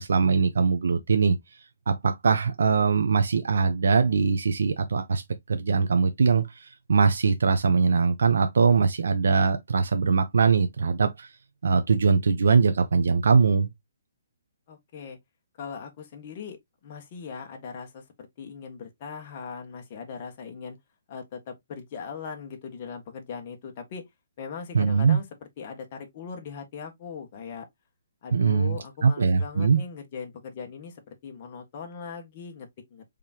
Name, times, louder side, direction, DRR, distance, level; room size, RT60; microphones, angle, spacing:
voice 1, 0.0-5.2 5.5-11.3 11.6-13.7 24.7-25.2 28.3-29.8, right 5 dB, 75° right, 0.7 m, -22 dB
voice 2, 14.7-15.2 15.6-16.6 16.8-18.0 18.4-20.8 21.1-24.0 24.4-25.2 25.6-27.6 28.2-33.0, left 6 dB, 35° left, 1.4 m, -39 dB
5.0 x 3.6 x 2.8 m
hypercardioid pair, 165°, 0 cm